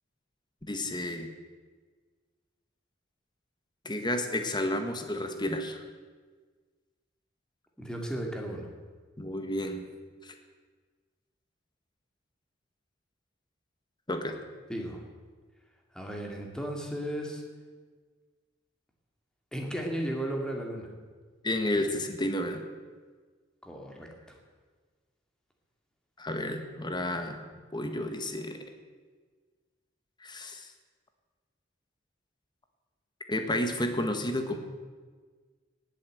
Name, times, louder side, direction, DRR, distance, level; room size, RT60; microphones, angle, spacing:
voice 1, 0.7-1.3 3.8-5.8 9.2-9.9 10.2-10.3 14.1-14.3 21.4-22.6 26.2-27.4 27.7-28.6 30.2-30.7 33.3-34.6, left 1 dB, 25° left, 6 dB, 1.6 m, -31 dB
voice 2, 7.8-8.7 14.7-15.0 15.9-17.4 19.5-20.9 23.6-24.1, right 1 dB, 5° left, 1 dB, 2.5 m, -35 dB
18.5 x 8.6 x 7.8 m, 1.5 s
head